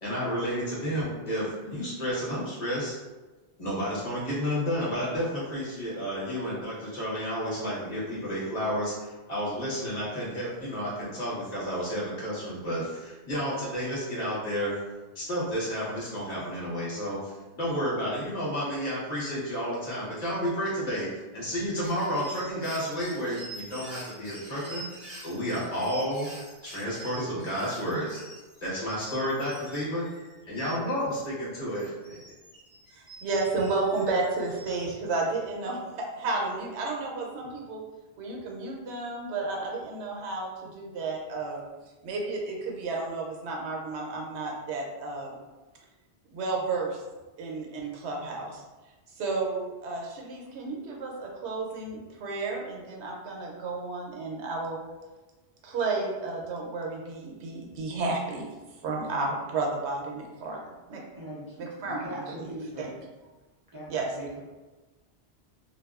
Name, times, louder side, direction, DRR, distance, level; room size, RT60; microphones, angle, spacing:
voice 1, 0.0-3.0 3.6-14.7 15.1-26.3 26.6-28.2 28.6-30.1 30.5-32.2, equal, 40° left, -8 dB, 0.9 m, -31 dB
sound 1, 21.8-31.2 31.7-34.8, right 1 dB, 15° right, 1.0 m, -46 dB
voice 2, 32.9-35.8 36.2-37.8 38.2-41.6 42.0-45.4 46.3-47.0 47.4-48.6 49.2-54.8 55.6-58.4 58.8-60.6 60.9-61.0 61.6-62.5 62.8-62.9 63.9-64.1, right 3 dB, 90° right, -1 dB, 0.9 m, -32 dB
voice 3, 61.1-61.6 61.9-62.9 63.7-63.9 64.1-64.4, equal, 30° right, -9 dB, 0.4 m, -40 dB
2.5 x 2.2 x 2.3 m, 1.2 s
omnidirectional pair, 1.1 m